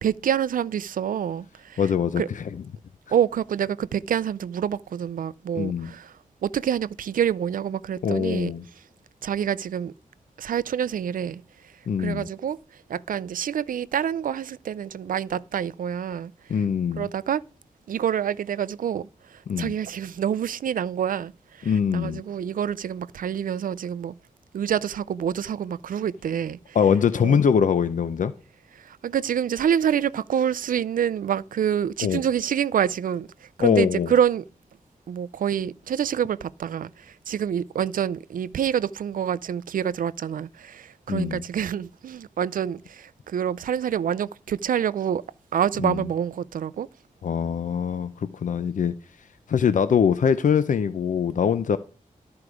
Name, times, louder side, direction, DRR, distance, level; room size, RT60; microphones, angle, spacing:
voice 1, 0.0-1.8 2.2-2.3 3.1-6.1 6.4-8.5 9.2-9.9 10.4-11.4 12.0-12.6 12.9-16.3 17.0-17.4 17.9-19.1 19.6-21.3 21.6-24.1 24.5-26.6 27.2-27.4 28.8-33.3 33.6-34.4 35.1-45.2 45.5-46.9, right 9 dB, 80° right, 0.4 m, -27 dB
voice 2, 1.8-2.6 5.5-5.9 8.0-8.6 11.9-12.3 16.5-17.1 19.5-19.7 21.6-22.2 26.7-28.3 32.0-32.2 33.6-34.1 41.1-41.4 45.8-46.1 47.2-48.9 49.5-51.8, left 7 dB, 70° left, 0.5 m, -23 dB
12.5 x 4.8 x 4.9 m
wide cardioid pair, 145°, 14 cm